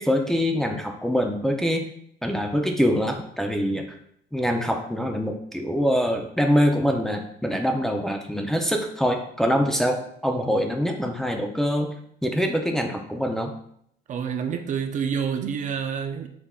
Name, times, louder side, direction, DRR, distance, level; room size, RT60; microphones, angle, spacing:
voice 1, 0.0-1.9 2.2-3.8 4.3-11.9 12.2-13.5, equal, ahead, 0.5 m, -24 dB
voice 2, 14.1-16.3, right 7 dB, 50° right, 0.5 m, -28 dB
5.6 x 3.5 x 2.4 m
cardioid pair, 110°, 17 cm